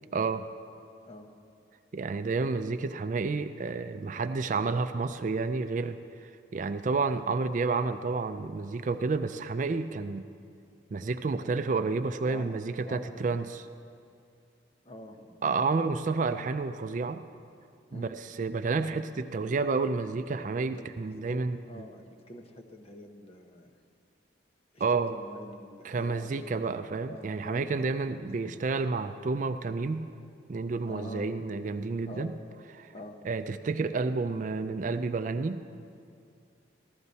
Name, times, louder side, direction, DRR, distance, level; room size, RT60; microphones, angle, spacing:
voice 1, 0.1-0.4 1.9-6.0 6.5-10.3 10.9-13.6 15.4-17.2 17.9-21.8 24.8-25.2 25.8-30.1 30.5-32.3 32.8-32.9 33.2-35.6, right 4 dB, 40° right, 9 dB, 0.3 m, -30 dB
voice 2, 12.2-12.6 12.8-13.2 14.8-15.4 17.9-18.1 20.5-20.9 21.3-23.8 24.7-26.6 27.1-28.5 30.9-31.3 32.1-32.3 32.9-33.2, left 1 dB, 30° left, 3 dB, 0.9 m, -45 dB
15.0 x 12.5 x 4.1 m, 2.4 s
head